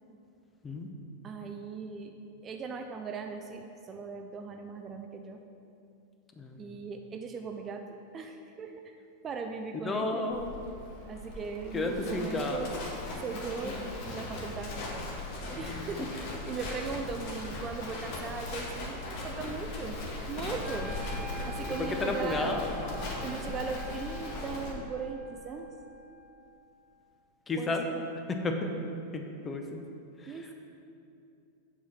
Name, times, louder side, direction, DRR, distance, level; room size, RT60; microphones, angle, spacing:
voice 1, 1.2-2.2 2.4-5.4 6.6-7.9 8.1-9.0 9.2-10.2 11.1-12.7 13.2-13.8 14.0-14.7 15.6-20.0 20.3-21.1 21.5-22.6 23.2-25.7 27.6-28.0 30.3-30.5, right 5 dB, 25° right, 4 dB, 0.5 m, -38 dB
voice 2, 9.8-10.5 11.7-12.6 21.3-22.7 27.5-27.8 28.3-28.7 29.1-29.6, left 2 dB, 20° left, 4 dB, 0.8 m, -32 dB
Livestock farm animals working animals, 10.3-24.7, left 2 dB, 45° left, 1.3 m, -38 dB
Wind instrument woodwind instrument, 20.6-26.7, right 5 dB, ahead, 1.9 m, -47 dB
8.1 x 4.7 x 5.8 m, 2.6 s
figure-of-eight pair, 90°, 0 cm